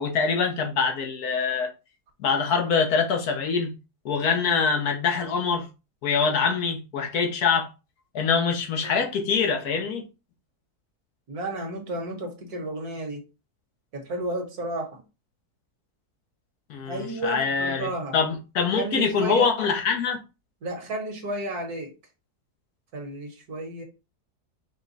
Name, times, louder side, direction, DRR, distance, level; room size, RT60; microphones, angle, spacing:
voice 1, 0.0-1.7 2.2-3.7 4.0-5.7 6.0-7.7 8.1-10.0 16.7-20.2, left 5 dB, 70° left, 1.4 m, -24 dB
voice 2, 11.3-13.2 13.9-15.0 16.8-18.2 18.8-19.5 20.6-21.9 22.9-23.8, right 2 dB, 70° right, 1.7 m, -32 dB
5.2 x 2.2 x 4.0 m
omnidirectional pair, 1.7 m